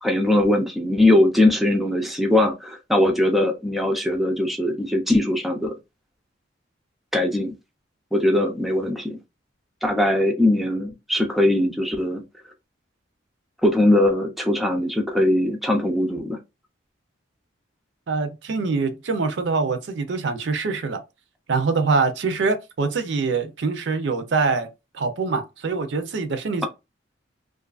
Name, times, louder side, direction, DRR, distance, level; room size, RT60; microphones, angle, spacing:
voice 1, 0.0-5.7 7.1-7.5 8.1-9.2 9.8-12.2 13.6-16.4, left 1 dB, ahead, 0.3 m, -20 dB
voice 2, 18.1-21.0 21.5-24.7 24.9-26.7, right 4 dB, 65° right, 0.5 m, -24 dB
2.5 x 2.3 x 2.3 m
head